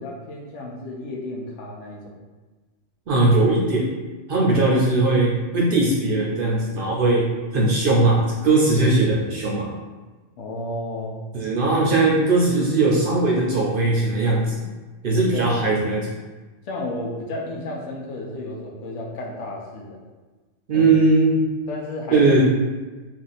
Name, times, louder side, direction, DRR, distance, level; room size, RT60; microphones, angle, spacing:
voice 1, 0.0-2.1 4.5-4.8 10.4-11.2 15.3-15.5 16.6-20.0 20.7-20.9 21.7-22.2, left 2 dB, 75° left, -1 dB, 0.9 m, -32 dB
voice 2, 3.1-3.9 4.3-9.7 11.3-14.6 15.0-16.1 20.7-21.4 22.1-22.6, right 2 dB, 60° right, -3 dB, 0.6 m, -19 dB
2.6 x 2.4 x 3.9 m, 1.3 s
omnidirectional pair, 1.3 m